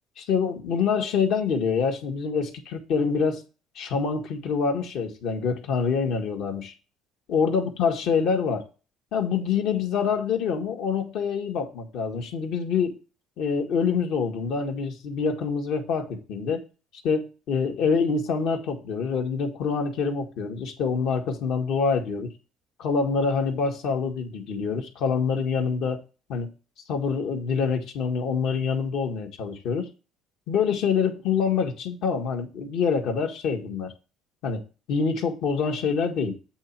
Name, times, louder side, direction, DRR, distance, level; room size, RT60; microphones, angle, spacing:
voice 1, 0.2-3.4 3.7-6.7 7.3-8.6 9.1-13.0 13.4-16.6 17.0-22.3 22.8-26.0 26.3-26.5 26.9-29.9 30.5-33.9 34.4-34.6 34.9-36.4, left 5 dB, 70° left, 1.5 m, -26 dB
8.1 x 3.1 x 5.8 m
cardioid pair, 110°, 0 cm